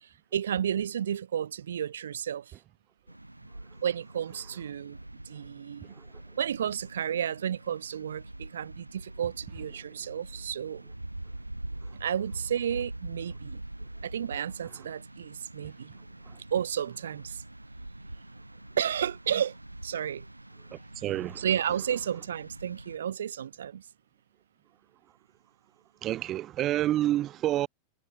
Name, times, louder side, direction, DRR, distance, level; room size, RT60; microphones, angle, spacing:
voice 1, 0.0-2.5 3.8-5.0 5.2-5.9 6.4-10.8 12.0-13.6 14.0-15.9 16.5-17.4 18.8-19.6 19.8-20.3 21.4-23.9, right 9 dB, 65° right, 1.2 m, -32 dB
sound 1, 3.1-23.0, right 1 dB, 85° right, 5.4 m, -44 dB
voice 2, 20.7-21.5 26.0-27.7, right 13 dB, 35° right, 0.7 m, -29 dB
figure-of-eight pair, 90°, 0 cm